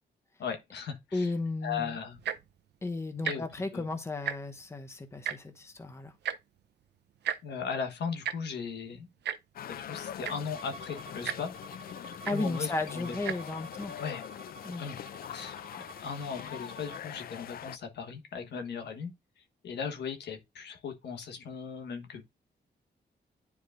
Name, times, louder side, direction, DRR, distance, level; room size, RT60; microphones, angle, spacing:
voice 1, 0.4-1.3 1.6-2.2 3.2-3.4 3.7-3.8 7.4-9.1 9.7-11.5 12.3-13.1 14.0-14.2 14.7-19.1 19.6-22.2, left 6 dB, 90° left, 1.3 m, -37 dB
voice 2, 1.1-2.0 2.8-6.1 12.3-13.9 14.6-14.9, left 2 dB, 15° left, 0.9 m, -34 dB
Tick-tock, 2.1-2.5 3.2-3.4 3.7-3.8 4.1-4.6 5.2-5.4 6.2-6.4 7.2-7.4 8.2-8.4 9.2-9.4 10.0-10.1 10.2-10.5 11.2-11.4 12.2-12.4 13.2-13.4 14.1-14.2, right 9 dB, 85° right, 0.6 m, -33 dB
sound 1, 9.6-17.8, left 10 dB, 60° left, 0.4 m, -43 dB
Bowed string instrument, 10.5-17.1, right 1 dB, 35° right, 1.0 m, -50 dB
10.0 x 4.7 x 2.5 m
wide cardioid pair, 140°, 17 cm